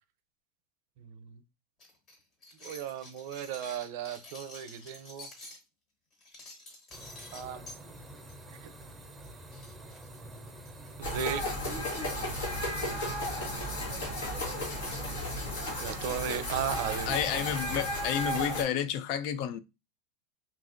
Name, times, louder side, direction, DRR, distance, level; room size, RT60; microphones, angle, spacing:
voice 1, 1.0-1.4 2.6-5.3 7.3-7.6 8.6-8.7 11.0-11.4 12.8-13.1 15.8-17.2, right 8 dB, 65° right, 0.5 m, -36 dB
sound 1, 1.8-5.6 6.1-7.8 8.3-8.5 8.8-8.9 9.2-9.3 9.5-10.9 11.6-12.0 12.3-12.5 12.8-13.3 14.2-14.4 14.9-15.1 15.6-17.8, left 2 dB, 40° left, 1.4 m, -50 dB
sound 2, 6.9-18.1, right 1 dB, 15° right, 0.5 m, -48 dB
sound 3, 11.0-18.6, left 1 dB, 85° left, 1.2 m, -34 dB
voice 2, 17.1-19.6, left 9 dB, 60° left, 0.3 m, -31 dB
2.9 x 2.5 x 2.5 m
supercardioid pair, 125°, 0 cm